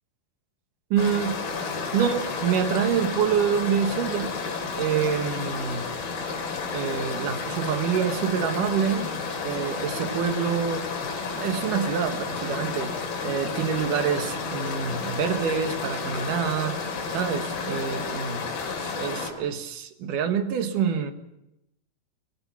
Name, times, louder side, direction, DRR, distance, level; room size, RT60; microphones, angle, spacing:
voice 1, 0.9-1.4 1.9-4.3 4.8-5.9 6.7-9.1 9.4-10.9 11.3-13.0 13.2-16.8 17.1-18.5 18.8-21.1, right 7 dB, 65° right, 7 dB, 2.8 m, -26 dB
sound 1, 1.0-19.3, left 4 dB, 90° left, 5.0 m, -31 dB
22.0 x 18.0 x 7.3 m, 0.88 s
omnidirectional pair, 4.2 m